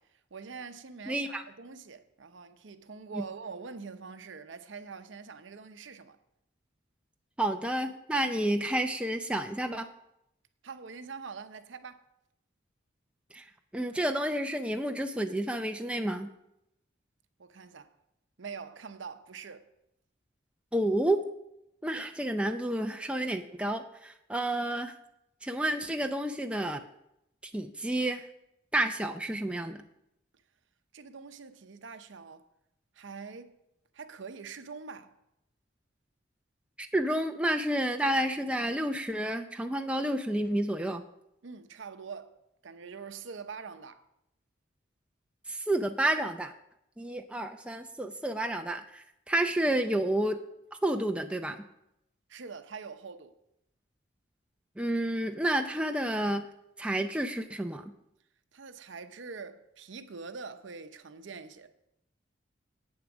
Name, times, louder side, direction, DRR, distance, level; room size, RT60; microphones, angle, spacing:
voice 1, 0.0-6.2 10.6-12.0 17.4-17.9 18.4-19.7 30.9-32.5 32.9-33.6 33.9-35.1 41.4-42.3 42.6-44.1 52.3-53.4 58.5-61.7, right 5 dB, 75° right, 0.7 m, -44 dB
voice 2, 1.1-1.4 3.1-3.2 7.4-9.9 13.3-13.4 13.7-16.3 20.7-21.2 21.8-24.9 25.4-26.8 27.5-28.2 28.7-29.8 36.8-41.0 45.5-46.5 47.0-50.4 50.8-51.6 54.8-56.5 56.8-57.9, right 1 dB, 5° right, 0.4 m, -30 dB
8.8 x 7.4 x 6.0 m
head